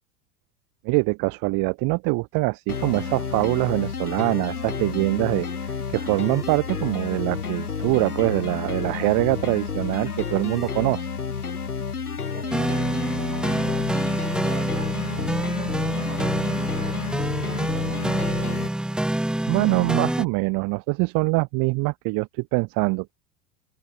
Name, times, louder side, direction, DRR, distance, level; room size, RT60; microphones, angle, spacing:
voice 1, 0.8-11.1 19.5-23.1, right 26 dB, 50° right, 1.7 m, -24 dB
sound 1, 2.7-18.7, left 6 dB, 85° left, 5.2 m, -30 dB
voice 2, 12.3-17.0 17.4-18.8, right 8 dB, 80° right, 6.1 m, -42 dB
sound 2, 12.5-20.2, right 1 dB, ahead, 0.6 m, -26 dB
open air
figure-of-eight pair, 80°, 44 cm